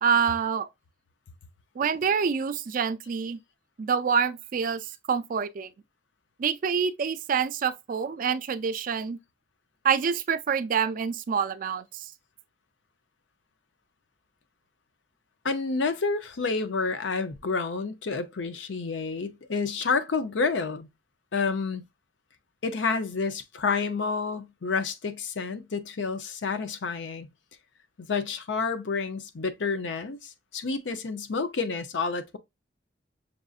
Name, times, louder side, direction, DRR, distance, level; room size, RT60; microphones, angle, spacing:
voice 1, 0.0-0.7 1.8-3.4 3.8-5.7 6.4-9.2 9.8-12.1, right 6 dB, 50° right, 0.4 m, -26 dB
voice 2, 15.4-20.9 21.3-21.8 22.6-27.3 28.0-32.4, left 4 dB, 90° left, 0.6 m, -29 dB
6.0 x 2.6 x 2.4 m
head